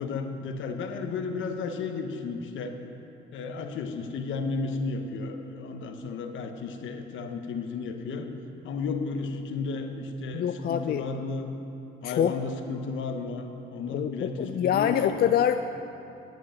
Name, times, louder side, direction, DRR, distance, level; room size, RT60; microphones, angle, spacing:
voice 1, 0.0-2.7 3.3-8.3 8.6-11.5 12.0-15.3, left 4 dB, 75° left, 5 dB, 1.0 m, -33 dB
voice 2, 10.3-11.1 12.0-12.3 13.9-15.6, left 9 dB, 50° left, 8 dB, 0.4 m, -25 dB
11.0 x 7.7 x 6.4 m, 2.8 s
cardioid pair, 90°, 20 cm